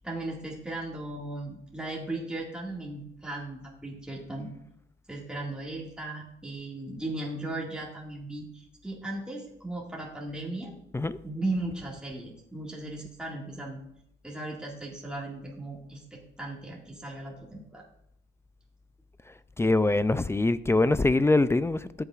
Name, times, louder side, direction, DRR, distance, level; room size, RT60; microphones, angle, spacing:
voice 1, 0.0-4.5 5.1-10.7 11.2-13.8 14.2-17.8, right 2 dB, 5° right, 1.9 m, -37 dB
voice 2, 19.6-22.0, left 2 dB, 15° left, 0.4 m, -23 dB
13.5 x 6.8 x 2.4 m
cardioid pair, 90°, 20 cm